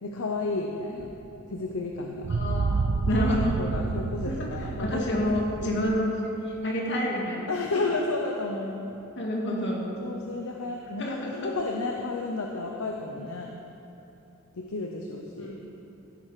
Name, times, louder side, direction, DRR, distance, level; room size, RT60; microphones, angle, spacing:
voice 1, 0.0-1.1 1.5-2.3 3.1-5.2 7.5-8.9 10.0-13.5 14.5-15.6, left 3 dB, 85° left, 1 dB, 0.8 m, -32 dB
sound 1, 1.0-1.1 2.2-6.0, right 4 dB, 85° right, 0.4 m, -29 dB
voice 2, 2.3-3.6 4.2-4.5 4.8-6.1 6.4-7.5 9.2-9.9 11.0-11.5 15.4-15.6, left 1 dB, 60° left, -2 dB, 2.1 m, -29 dB
15.5 x 7.5 x 4.9 m, 2.9 s
head